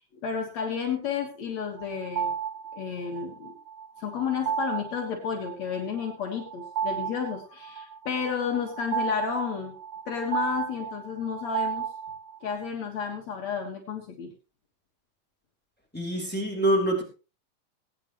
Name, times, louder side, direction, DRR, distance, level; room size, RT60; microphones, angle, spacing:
voice 1, 0.0-2.3 2.7-3.5 4.0-9.7 10.1-11.9 12.4-14.3, left 6 dB, 65° left, 2 dB, 2.9 m, -31 dB
sound 1, 1.8-12.5, right 7 dB, 70° right, 1.0 m, -34 dB
voice 2, 15.9-17.0, right 1 dB, 5° left, -1 dB, 3.3 m, -25 dB
21.0 x 9.3 x 3.1 m, 0.33 s
omnidirectional pair, 3.4 m